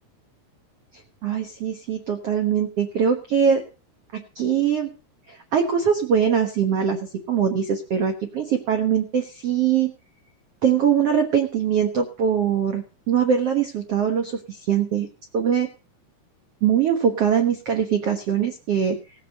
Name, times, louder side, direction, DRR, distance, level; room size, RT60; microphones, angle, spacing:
voice 1, 0.9-3.6 4.1-4.9 5.3-9.9 10.6-15.1 15.3-15.7 16.6-19.0, right 8 dB, 70° right, 5 dB, 1.5 m, -22 dB
17.5 x 8.4 x 5.3 m, 0.33 s
omnidirectional pair, 4.7 m